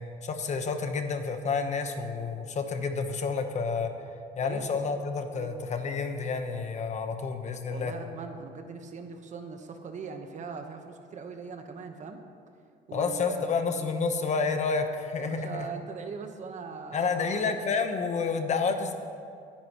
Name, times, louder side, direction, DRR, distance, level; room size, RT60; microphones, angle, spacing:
voice 1, 0.0-3.9 4.4-7.9 12.9-15.6 16.9-18.9, left 5 dB, 45° left, 6 dB, 1.1 m, -29 dB
voice 2, 4.4-5.0 5.3-5.5 7.7-12.2 12.9-13.6 15.2-17.6, right 5 dB, 45° right, 5 dB, 1.2 m, -40 dB
22.5 x 10.0 x 3.1 m, 2.4 s
cardioid pair, 110°, 17 cm